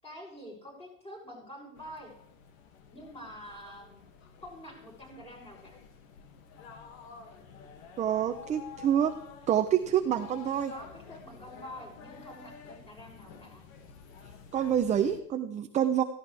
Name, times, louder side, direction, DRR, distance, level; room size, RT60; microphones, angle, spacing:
voice 1, 0.0-2.1 2.9-4.1 4.4-5.8 10.7-13.6, equal, 15° left, -2 dB, 7.3 m, -47 dB
sound 1, 1.8-15.2, left 6 dB, 85° left, 2.3 m, -50 dB
voice 2, 8.0-9.1 9.5-10.7 14.5-16.0, right 9 dB, 20° right, 6 dB, 0.6 m, -27 dB
17.0 x 16.0 x 3.4 m, 0.76 s
supercardioid pair, 150°, 39 cm